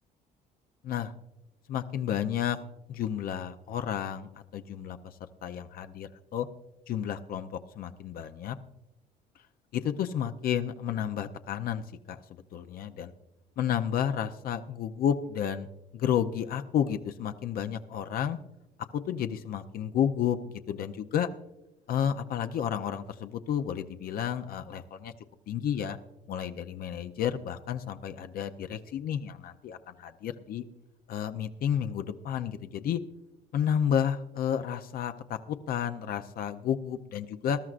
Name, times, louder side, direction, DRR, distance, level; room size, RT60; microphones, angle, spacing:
voice 1, 1.7-2.6 2.9-6.5 6.9-8.6 9.7-12.2 12.5-13.1 13.6-15.7 15.9-18.4 18.9-20.4 20.7-21.3 21.9-25.1 25.5-26.0 26.3-30.6 31.1-33.0 33.5-37.6, left 9 dB, 60° left, 8 dB, 0.6 m, -31 dB
20.0 x 12.0 x 2.5 m, 0.92 s
cardioid pair, 110°, 17 cm